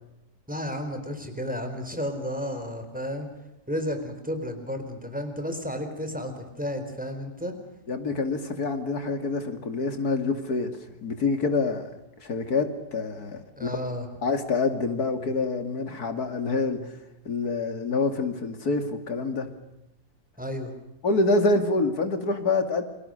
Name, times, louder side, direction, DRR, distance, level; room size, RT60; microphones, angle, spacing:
voice 1, 0.5-3.3 3.7-7.5 13.6-14.1 20.4-20.7, equal, 5° right, 6 dB, 4.1 m, -32 dB
voice 2, 7.9-10.8 11.0-11.9 12.2-13.8 14.2-16.9 17.3-19.5 21.0-22.8, left 3 dB, 65° left, 8 dB, 2.9 m, -26 dB
29.5 x 22.0 x 6.5 m, 0.93 s
omnidirectional pair, 1.8 m